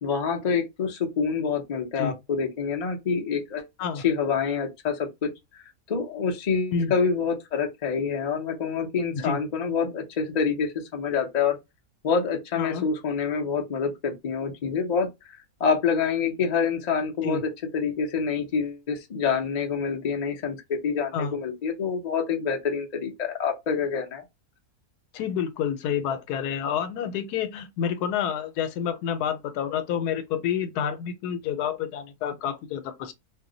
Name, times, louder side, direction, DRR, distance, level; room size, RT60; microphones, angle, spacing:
voice 1, 0.0-3.6 4.0-5.3 5.9-11.6 12.0-24.2, left 5 dB, 50° left, 0.5 m, -27 dB
voice 2, 25.1-33.1, left 8 dB, 85° left, 1.1 m, -29 dB
2.7 x 2.1 x 3.7 m
omnidirectional pair, 1.6 m